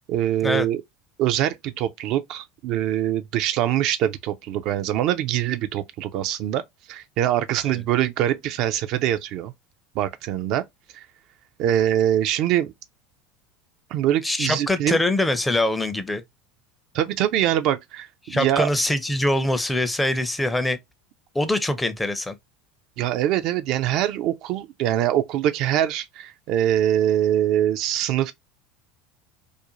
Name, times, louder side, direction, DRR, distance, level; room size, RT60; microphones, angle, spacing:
voice 1, 0.1-0.8 1.2-6.6 6.9-9.5 10.0-10.6 10.9-11.1 11.6-12.7 13.9-15.0 16.9-18.7 23.0-28.3, right 11 dB, 55° right, 0.3 m, -23 dB
voice 2, 14.2-16.2 18.2-20.8 21.3-22.4, left 1 dB, 10° left, 0.5 m, -23 dB
2.5 x 2.1 x 2.8 m
hypercardioid pair, 80°, 0 cm